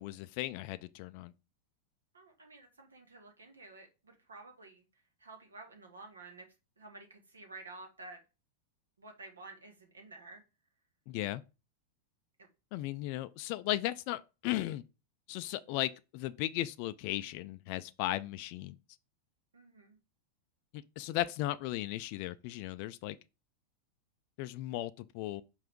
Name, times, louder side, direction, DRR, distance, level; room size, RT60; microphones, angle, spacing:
voice 1, 0.0-1.3 11.1-11.4 12.7-14.8 15.3-18.8 20.7-23.2 24.4-25.4, left 15 dB, 45° left, 0.3 m, -36 dB
voice 2, 2.1-4.9 5.2-6.5 6.8-8.2 9.0-10.4 12.4-12.5 19.5-20.0, right 3 dB, 75° right, 1.5 m, -51 dB
5.5 x 4.9 x 3.6 m
figure-of-eight pair, 90°, 0 cm